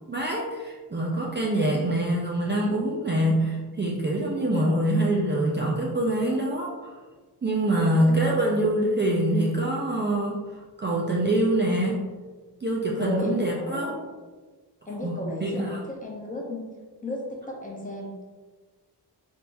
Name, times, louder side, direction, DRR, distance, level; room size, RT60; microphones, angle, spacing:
voice 1, 0.1-6.9 7.4-12.1 12.6-14.0 15.0-15.8, right 1 dB, 25° right, -3 dB, 0.4 m, -25 dB
voice 2, 4.4-4.7 7.6-8.3 12.9-13.9 14.9-16.7 17.0-18.1, left 1 dB, 20° left, -2 dB, 0.7 m, -34 dB
4.3 x 3.6 x 2.6 m, 1.3 s
wide cardioid pair, 170°, 42 cm